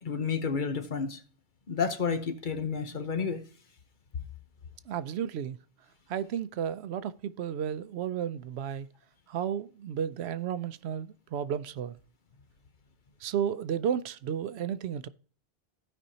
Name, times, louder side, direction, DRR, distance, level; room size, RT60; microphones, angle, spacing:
voice 1, 0.0-1.2 1.7-3.4, left 5 dB, 50° left, 1.0 m, -30 dB
voice 2, 4.9-5.6 6.1-8.9 9.3-12.0 13.2-15.1, right 9 dB, 80° right, 0.8 m, -33 dB
15.5 x 5.2 x 2.8 m
omnidirectional pair, 1.1 m